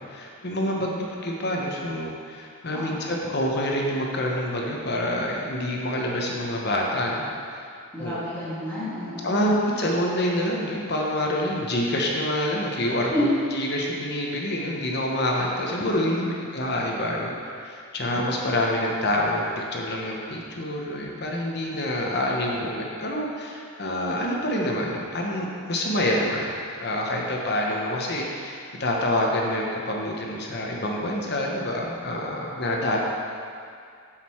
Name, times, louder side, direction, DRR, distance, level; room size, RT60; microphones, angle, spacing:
voice 1, 0.0-7.7 8.0-8.1 9.2-13.1 13.5-16.2 16.5-17.3 17.6-26.5 26.8-33.1, left 1 dB, 50° left, -1 dB, 1.0 m, -27 dB
voice 2, 2.7-3.1 7.9-9.5 13.1-13.2 16.1-16.4, left 1 dB, 10° left, -12 dB, 2.2 m, -31 dB
7.7 x 6.4 x 4.5 m, 2.3 s
head